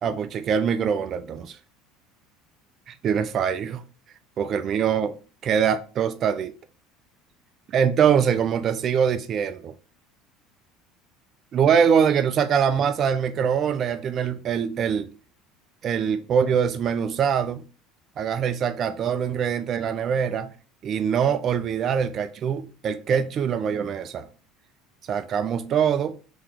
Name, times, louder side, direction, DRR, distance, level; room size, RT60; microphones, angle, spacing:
voice 1, 0.0-1.6 3.0-3.8 4.4-5.2 5.4-6.5 7.7-9.7 11.5-15.1 15.8-17.6 18.2-20.5 20.8-24.3 25.1-26.2, right 7 dB, 45° right, 0.4 m, -23 dB
3.5 x 2.9 x 3.5 m
supercardioid pair, 95°, 0 cm